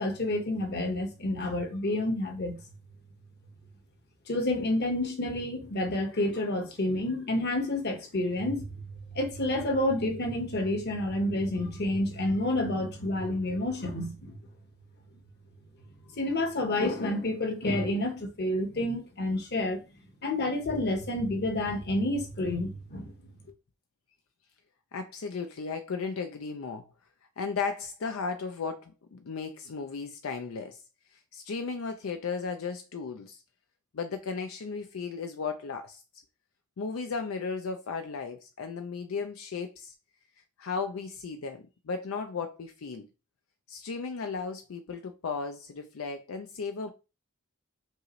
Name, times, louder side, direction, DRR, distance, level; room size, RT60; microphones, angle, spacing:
voice 1, 0.0-2.6 4.3-8.8 9.1-14.4 16.2-19.8 20.2-23.1, left 1 dB, 55° left, 1.1 m, -29 dB
voice 2, 24.9-26.9 27.4-30.8 31.1-33.4 33.9-36.0 36.8-39.9 40.6-43.1 43.7-46.9, left 5 dB, 85° left, 0.5 m, -35 dB
5.4 x 2.5 x 3.1 m
head